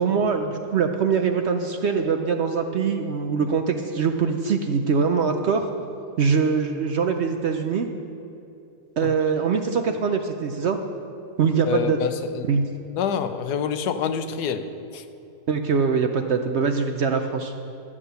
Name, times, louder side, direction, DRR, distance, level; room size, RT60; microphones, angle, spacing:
voice 1, 0.0-5.7 6.2-7.9 9.0-10.8 11.4-12.0 12.5-12.7 15.5-17.5, right 5 dB, 60° right, 6 dB, 0.7 m, -23 dB
voice 2, 11.7-12.4 13.0-14.7 14.9-15.0, left 7 dB, 85° left, 10 dB, 1.3 m, -26 dB
12.5 x 6.1 x 8.0 m, 2.9 s
omnidirectional pair, 1.7 m